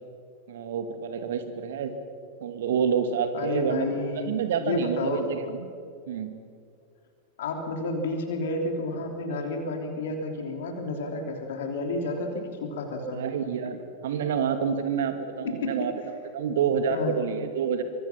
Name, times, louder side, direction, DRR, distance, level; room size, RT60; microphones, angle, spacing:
voice 1, 0.5-1.9 2.4-3.9 4.3-5.7 6.1-6.3 13.1-13.8 14.0-15.9 16.3-17.8, right 7 dB, 60° right, 8 dB, 2.4 m, -28 dB
voice 2, 3.3-5.3 7.4-13.2 15.4-15.9 16.9-17.2, left 2 dB, 60° left, 4 dB, 3.4 m, -31 dB
25.0 x 24.0 x 6.0 m, 2.3 s
figure-of-eight pair, 90°, 0 cm